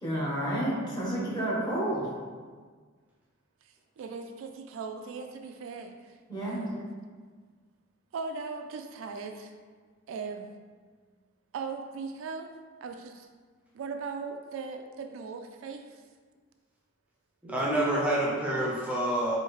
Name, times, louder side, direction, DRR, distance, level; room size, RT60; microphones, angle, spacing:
voice 1, 0.0-2.1 6.3-6.6, right 1 dB, 20° left, -6 dB, 1.1 m, -30 dB
voice 2, 4.0-6.1 6.4-6.8 8.1-9.5 10.1-10.5 11.5-12.5 12.8-13.3 13.7-15.8, right 4 dB, 70° right, 5 dB, 0.3 m, -38 dB
voice 3, 17.4-19.4, right 1 dB, 5° right, -6 dB, 0.6 m, -27 dB
4.6 x 2.7 x 3.1 m, 1.5 s
head